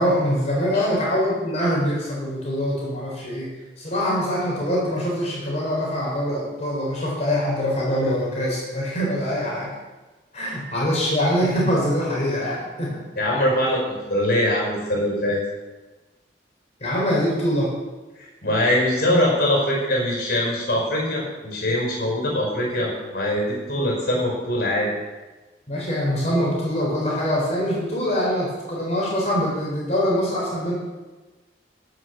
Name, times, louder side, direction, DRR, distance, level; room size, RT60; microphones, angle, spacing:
voice 1, 0.0-3.5 3.8-9.8 10.3-13.0 16.8-17.7 25.7-30.7, equal, 40° left, -5 dB, 4.0 m, -24 dB
voice 2, 13.2-15.4 18.2-24.9, left 1 dB, 60° left, -2 dB, 4.8 m, -23 dB
13.0 x 6.5 x 6.9 m, 1.2 s
head